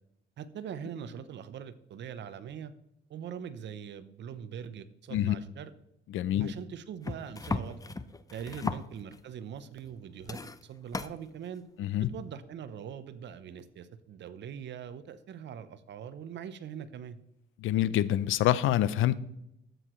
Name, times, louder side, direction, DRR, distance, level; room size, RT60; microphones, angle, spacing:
voice 1, 0.4-2.7 3.1-5.7 6.4-7.8 8.3-11.7 12.0-17.2, right 8 dB, 65° right, 12 dB, 0.8 m, -42 dB
voice 2, 6.1-6.5 11.8-12.1 17.6-19.2, left 13 dB, 85° left, 17 dB, 0.5 m, -26 dB
sound 1, 7.0-9.3 9.8-10.0 10.2-11.1 12.2-12.3, left 3 dB, 15° left, 0.5 m, -36 dB
12.5 x 7.8 x 3.1 m, 0.81 s
cardioid pair, 90°, 20 cm